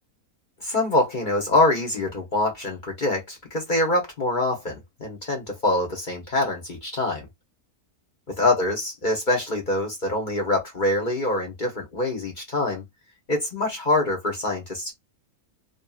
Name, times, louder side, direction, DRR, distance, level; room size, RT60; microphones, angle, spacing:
voice 1, 0.6-7.3 8.4-12.8 13.3-14.9, left 2 dB, 40° left, 0.8 m, -24 dB
2.7 x 2.7 x 2.3 m
omnidirectional pair, 1.6 m